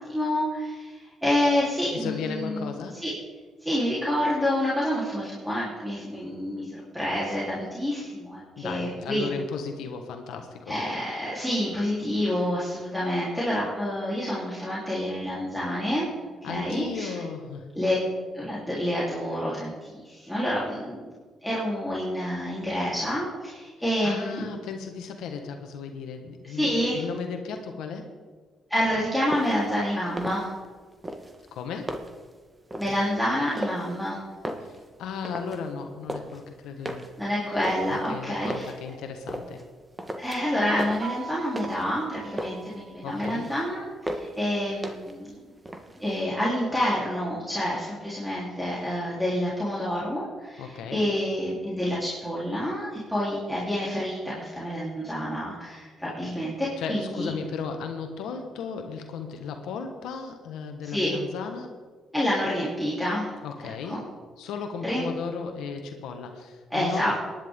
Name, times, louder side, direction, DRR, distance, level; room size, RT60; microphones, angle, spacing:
voice 1, 0.1-2.7 3.0-3.1 3.6-6.7 6.9-9.3 10.7-16.1 16.4-17.2 17.7-18.0 18.3-21.1 21.4-24.4 26.4-26.9 28.7-30.5 32.8-34.2 37.2-38.7 40.2-43.8 44.2-45.3 46.0-57.3 60.8-61.2 62.1-63.3 63.9-64.0 64.8-65.0 66.7-67.1, equal, ahead, -8 dB, 3.6 m, -28 dB
voice 2, 1.9-3.0 8.6-10.8 16.4-17.7 24.0-28.1 31.5-31.9 34.6-34.7 35.0-37.0 37.9-39.6 43.0-43.5 50.6-51.1 56.8-61.8 63.4-64.0 64.4-67.2, left 5 dB, 85° left, 4 dB, 1.4 m, -35 dB
sound 1, 29.3-29.7 30.1-30.7 31.0-32.3 32.7-33.0 33.5-34.1 34.3-35.6 35.9-36.4 36.9-38.8 39.3-39.7 40.0-40.5 40.8-42.0 42.2-42.8 43.1-43.6 44.1-44.5 44.8-45.3 45.6-46.2, right 1 dB, 20° right, 1.4 m, -36 dB
sound 2, 41.0-43.7, right 5 dB, 55° right, 2.5 m, -42 dB
18.5 x 10.5 x 3.7 m, 1.4 s
cardioid pair, 90°, 0 cm